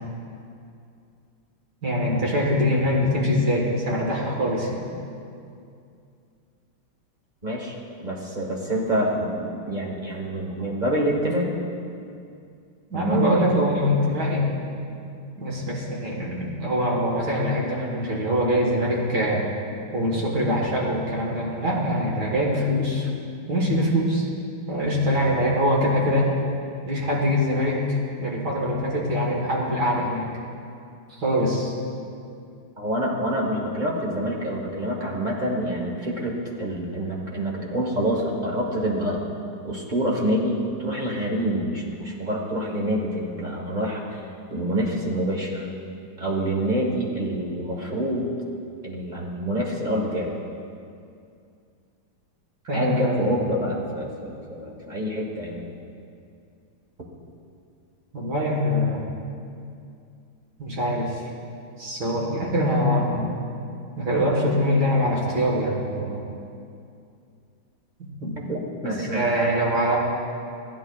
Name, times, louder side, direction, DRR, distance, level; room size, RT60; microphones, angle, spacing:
voice 1, 1.8-4.8 12.9-14.5 15.4-19.5 19.9-23.1 23.5-24.2 24.7-26.3 26.8-27.9 28.2-30.3 31.2-31.7 52.7-53.3 58.1-59.0 60.6-61.2 61.8-63.3 64.0-66.3 68.0-68.4 68.8-70.0, equal, 50° right, -3 dB, 1.9 m, -23 dB
voice 2, 7.4-11.5 12.9-13.4 32.8-39.2 39.6-44.2 44.5-45.7 46.2-48.3 48.8-50.3 52.7-55.6 68.4-69.2, right 1 dB, 30° right, -3 dB, 1.0 m, -27 dB
15.0 x 10.5 x 2.4 m, 2.4 s
omnidirectional pair, 2.4 m